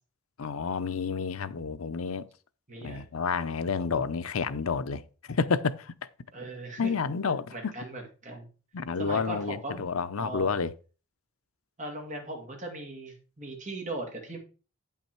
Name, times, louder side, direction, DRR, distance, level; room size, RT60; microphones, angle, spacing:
voice 1, 0.4-2.3 2.8-5.0 5.3-5.9 6.8-7.7 8.7-10.7, left 5 dB, 85° left, 0.7 m, -30 dB
voice 2, 2.7-3.1 6.3-6.9 7.5-8.5 9.0-9.8 10.2-10.5 11.8-14.4, right 2 dB, 35° right, 2.4 m, -38 dB
8.8 x 5.7 x 4.5 m
head